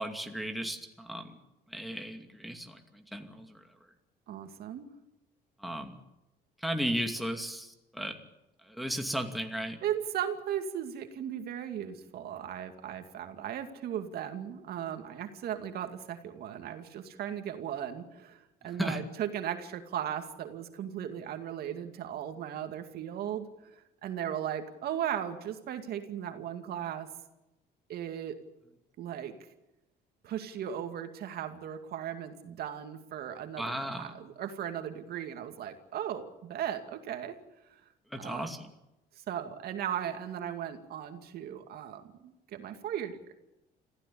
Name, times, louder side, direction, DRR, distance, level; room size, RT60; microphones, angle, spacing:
voice 1, 0.0-1.4 1.7-3.6 5.6-6.0 6.6-8.2 8.7-9.8 18.8-19.0 33.6-34.1 38.1-38.6, equal, ahead, 4 dB, 2.5 m, -35 dB
voice 2, 4.3-4.9 9.8-27.1 27.9-28.4 29.0-29.4 30.2-37.4 37.7-37.8 38.2-38.5 39.2-43.3, right 10 dB, 65° right, 6 dB, 2.4 m, -37 dB
26.0 x 15.5 x 8.6 m, 0.94 s
cardioid pair, 110°, 17 cm